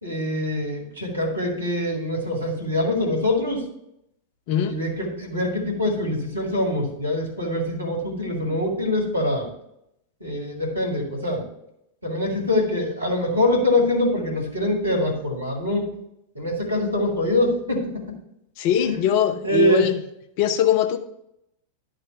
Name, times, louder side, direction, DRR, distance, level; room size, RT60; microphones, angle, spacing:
voice 1, 0.0-3.7 4.6-9.5 10.2-11.5 12.0-15.9 16.3-18.2 18.8-19.0 19.4-19.9, left 1 dB, 80° right, 0 dB, 2.1 m, -24 dB
voice 2, 4.5-4.8 18.6-20.0 20.4-21.0, left 10 dB, 45° left, 8 dB, 0.7 m, -21 dB
11.5 x 3.8 x 5.7 m, 0.80 s
figure-of-eight pair, 90°, 0 cm